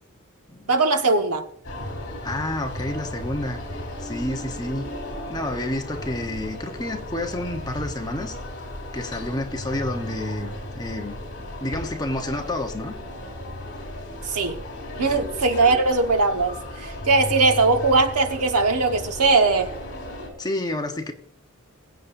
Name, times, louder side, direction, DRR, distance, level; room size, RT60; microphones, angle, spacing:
voice 1, 0.7-1.4 14.2-14.6 15.0-19.7, right 3 dB, 90° right, 1.3 m, -20 dB
sound 1, 1.6-20.3, left 1 dB, 50° left, 3.3 m, -35 dB
voice 2, 2.2-3.6 4.0-4.9 5.3-8.3 8.9-12.9 15.1-15.3 20.4-21.1, left 1 dB, 15° left, 1.0 m, -30 dB
21.5 x 8.3 x 2.6 m
head